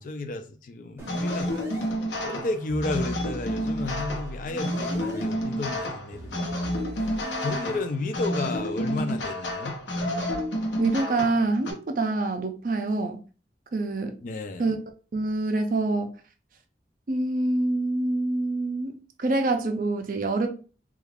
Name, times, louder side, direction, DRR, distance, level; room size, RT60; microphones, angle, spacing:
voice 1, 0.0-1.7 2.2-9.8 14.2-14.7, left 2 dB, 45° left, 0.3 m, -33 dB
sound 1, 1.0-1.8 2.7-5.2 6.1-7.8, right 1 dB, 15° right, 0.7 m, -40 dB
sound 2, 1.1-11.7, equal, 85° left, 0.8 m, -30 dB
voice 2, 10.8-13.2 13.7-14.2 14.6-14.8 15.1-16.1 17.1-20.5, right 2 dB, 50° right, 0.4 m, -26 dB
2.3 x 2.3 x 3.3 m
head